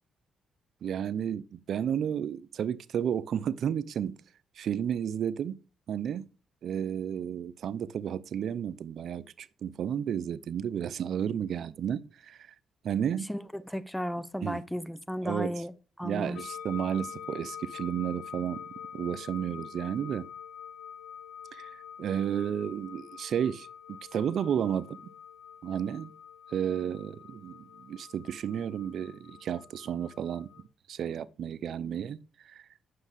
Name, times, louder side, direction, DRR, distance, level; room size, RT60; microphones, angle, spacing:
voice 1, 0.8-4.2 4.6-5.6 5.9-6.3 6.6-12.4 12.8-13.3 14.4-14.6 15.2-15.6 16.0-18.6 18.9-20.3 21.5-25.0 25.6-26.1 26.5-30.5 30.9-32.2 32.4-32.6, right 9 dB, 65° right, 0.7 m, -32 dB
voice 2, 13.3-15.7 16.0-16.4, equal, 5° left, 1.0 m, -34 dB
sound 1, 16.4-30.6, left 8 dB, 90° left, 1.0 m, -46 dB
9.6 x 6.6 x 8.2 m
cardioid pair, 90°, 0 cm